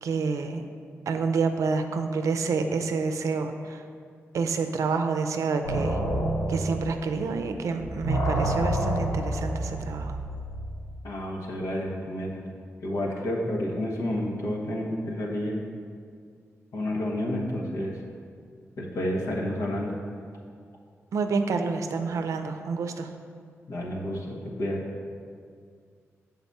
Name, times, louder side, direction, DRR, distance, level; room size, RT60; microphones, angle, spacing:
voice 1, 0.0-0.6 1.1-3.8 4.3-6.0 6.5-10.2 21.1-23.1, right 4 dB, 85° right, 6 dB, 0.5 m, -28 dB
sound 1, 5.6-7.5 7.8-10.8, right 1 dB, 65° left, 1.8 m, -29 dB
voice 2, 11.0-12.4 12.8-15.6 16.7-18.0 18.8-19.9 23.7-24.8, left 1 dB, 80° left, -1 dB, 1.1 m, -30 dB
7.1 x 4.0 x 5.3 m, 2.2 s
wide cardioid pair, 90°, 5 cm